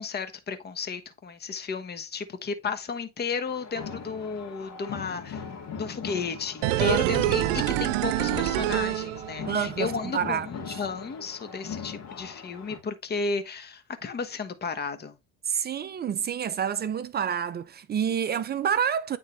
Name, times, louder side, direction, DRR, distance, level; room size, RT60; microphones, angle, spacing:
voice 1, 0.0-5.5 5.8-15.2, left 5 dB, 30° left, 1.2 m, -33 dB
sound 1, 3.5-12.8, left 6 dB, 60° left, 2.0 m, -40 dB
sound 2, 6.6-9.7 10.0-10.1, right 15 dB, 85° right, 0.6 m, -26 dB
voice 2, 6.8-7.9 9.5-10.5 15.5-19.2, right 8 dB, 30° right, 0.6 m, -29 dB
9.0 x 3.7 x 3.1 m
supercardioid pair, 95°, 31 cm